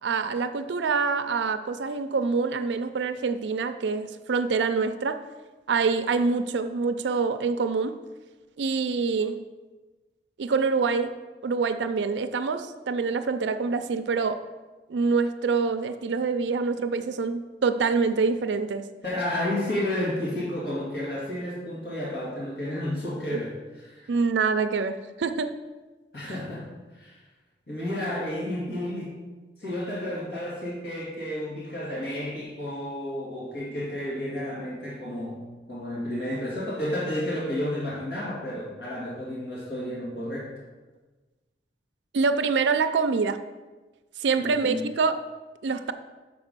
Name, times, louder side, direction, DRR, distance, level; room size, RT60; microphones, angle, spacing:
voice 1, 0.0-5.2 5.7-8.0 8.6-9.4 10.4-11.1 11.4-14.4 14.9-18.9 23.3-23.4 24.1-25.5 42.1-43.4 44.2-45.2 45.6-45.9, right 4 dB, 90° right, 10 dB, 0.4 m, -25 dB
voice 2, 19.0-23.5 23.8-24.1 26.1-26.7 26.9-27.2 27.7-29.2 29.6-35.4 35.7-40.6 44.4-44.9, left 1 dB, 65° left, -6 dB, 2.2 m, -31 dB
6.1 x 4.7 x 6.6 m, 1.2 s
head